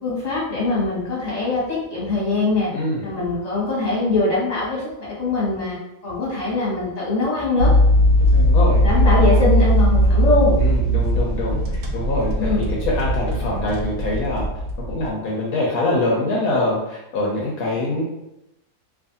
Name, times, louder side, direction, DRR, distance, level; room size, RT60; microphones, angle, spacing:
voice 1, 0.0-2.7 3.0-5.8 6.0-7.7 8.8-10.5 12.4-12.7, left 3 dB, 30° left, -6 dB, 1.0 m, -22 dB
voice 2, 2.7-3.1 8.3-8.8 9.2-9.4 10.6-14.5 14.9-18.0, left 2 dB, 70° left, -3 dB, 1.0 m, -24 dB
sound 1, 7.6-15.1, equal, 75° right, 1.0 m, -18 dB
2.6 x 2.4 x 2.6 m, 0.88 s
omnidirectional pair, 1.7 m